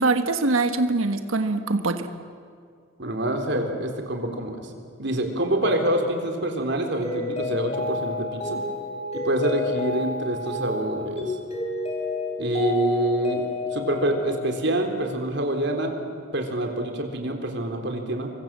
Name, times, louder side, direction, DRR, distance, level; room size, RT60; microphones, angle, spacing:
voice 1, 0.0-2.1, right 3 dB, 80° right, 8 dB, 1.5 m, -23 dB
voice 2, 3.0-4.7 5.0-8.6 9.1-11.4 12.4-13.5 13.7-15.9 16.3-18.3, right 1 dB, 55° right, 4 dB, 3.6 m, -26 dB
Mallet percussion, 7.0-15.2, left 3 dB, 30° left, 5.7 m, -30 dB
29.5 x 23.5 x 7.5 m, 2.2 s
head